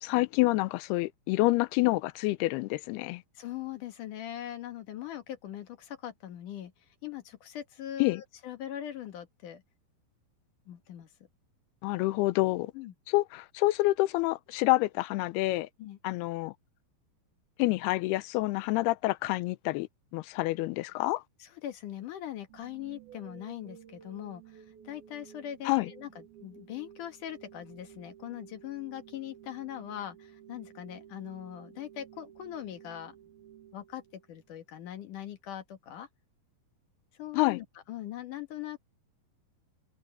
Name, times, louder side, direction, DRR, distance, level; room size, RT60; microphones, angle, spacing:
voice 1, 0.0-3.2 8.0-8.2 11.8-12.7 13.1-15.7 16.0-16.5 17.6-19.9 20.1-21.2 25.7-25.9 37.3-37.6, left 20 dB, 85° left, 2.7 m, -27 dB
voice 2, 3.3-6.7 7.0-9.6 10.7-11.1 12.7-12.9 15.8-16.0 21.0-21.1 21.4-33.2 33.7-36.1 37.2-38.8, left 11 dB, 60° left, 2.8 m, -41 dB
sound 1, 22.5-34.5, right 10 dB, 75° right, 3.2 m, -53 dB
omnidirectional pair, 4.5 m